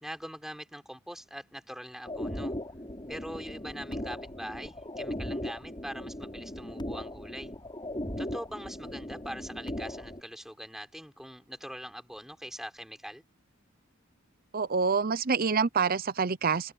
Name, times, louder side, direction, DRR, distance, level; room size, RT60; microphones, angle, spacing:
voice 1, 0.0-2.6 3.1-7.5 8.2-13.2, equal, ahead, 4.3 m, -42 dB
sound 1, 2.0-10.2, left 1 dB, 20° left, 7.0 m, -38 dB
voice 2, 14.5-16.7, right 5 dB, 45° right, 0.7 m, -27 dB
head